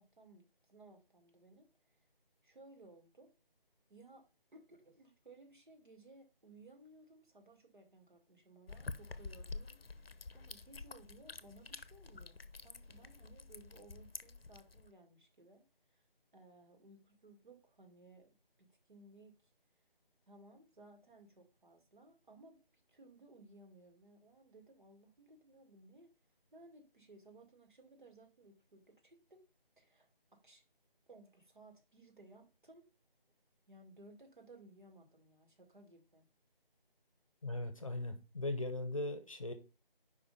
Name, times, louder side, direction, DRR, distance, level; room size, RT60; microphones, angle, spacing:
voice 1, 0.0-2.0 2.4-3.3 3.9-4.3 4.5-15.6 15.9-16.0 16.3-19.3 20.3-22.6 22.9-26.1 26.5-29.5 29.8-30.6 31.1-32.9 33.7-36.3, right 2 dB, 55° right, 1.9 m, -60 dB
sound 1, 8.7-14.9, left 3 dB, 80° left, 0.7 m, -49 dB
voice 2, 37.4-39.5, left 2 dB, 35° left, 0.8 m, -39 dB
5.1 x 4.8 x 5.2 m
figure-of-eight pair, 160°, 29 cm